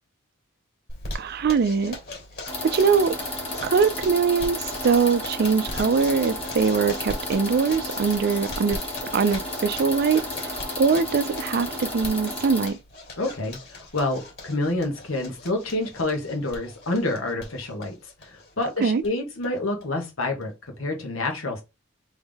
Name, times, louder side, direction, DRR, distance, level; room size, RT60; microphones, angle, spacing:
Zipper (clothing), 0.9-19.1 19.4-19.5 19.8-19.9 20.2-20.7, left 1 dB, 50° left, 2.6 m, -40 dB
voice 1, 1.1-2.0 2.6-3.1 3.6-8.8 9.1-12.8 18.8-19.0, right 5 dB, 50° right, 0.4 m, -22 dB
sound 1, 2.5-12.7, left 1 dB, 30° left, 1.3 m, -33 dB
voice 2, 13.2-21.6, left 2 dB, 70° left, 1.5 m, -28 dB
3.6 x 3.5 x 3.5 m
head